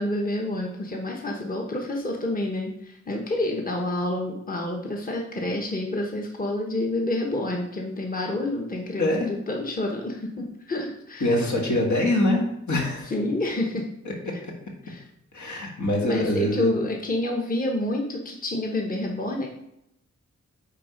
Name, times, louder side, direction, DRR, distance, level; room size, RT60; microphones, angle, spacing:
voice 1, 0.0-11.4 13.0-13.8 14.3-14.4 14.8-15.0 16.0-19.5, left 1 dB, 30° left, 0 dB, 1.1 m, -28 dB
voice 2, 9.0-9.3 11.2-13.1 15.3-16.8, left 1 dB, 75° left, 0 dB, 1.9 m, -24 dB
9.1 x 3.6 x 5.1 m, 0.79 s
wide cardioid pair, 120°, 29 cm